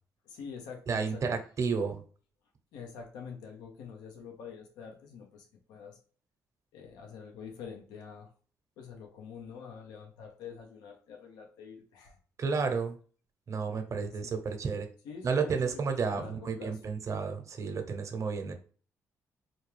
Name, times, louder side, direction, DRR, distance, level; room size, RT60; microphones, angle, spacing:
voice 1, 0.2-1.4 2.7-6.0 6.7-8.3 8.8-12.2 13.7-14.4 15.0-16.8, left 6 dB, 85° left, 3 dB, 0.8 m, -46 dB
voice 2, 0.9-2.0 12.4-13.0 13.5-14.9 15.2-18.5, right 5 dB, 50° right, 6 dB, 0.8 m, -31 dB
4.3 x 2.3 x 3.2 m, 0.41 s
supercardioid pair, 65°, 7 cm